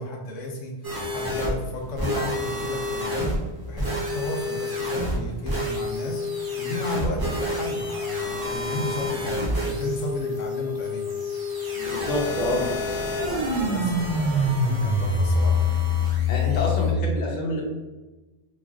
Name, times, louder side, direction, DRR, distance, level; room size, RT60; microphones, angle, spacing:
voice 1, 0.0-3.4 3.7-11.2 13.7-15.6, left 2 dB, 80° left, 1 dB, 0.9 m, -33 dB
sound 1, 0.8-16.9, left 2 dB, 35° right, 0.3 m, -27 dB
voice 2, 11.7-12.7 16.3-17.6, left 1 dB, 45° left, -2 dB, 0.6 m, -27 dB
3.1 x 2.4 x 2.3 m, 1.1 s
omnidirectional pair, 1.3 m